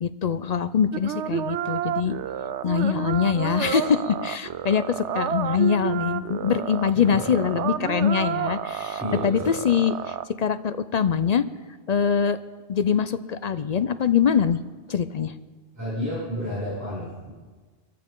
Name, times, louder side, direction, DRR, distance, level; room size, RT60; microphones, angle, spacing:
voice 1, 0.0-2.2 2.6-11.4 11.9-12.4 12.7-14.6 14.9-15.3, left 7 dB, 55° left, 12 dB, 0.5 m, -23 dB
sound 1, 0.9-10.2, right 9 dB, 90° right, 0.9 m, -30 dB
voice 2, 6.9-7.2 9.0-9.5 15.7-17.3, equal, 15° right, -11 dB, 6.8 m, -31 dB
22.0 x 14.5 x 3.8 m, 1.4 s
omnidirectional pair, 1.1 m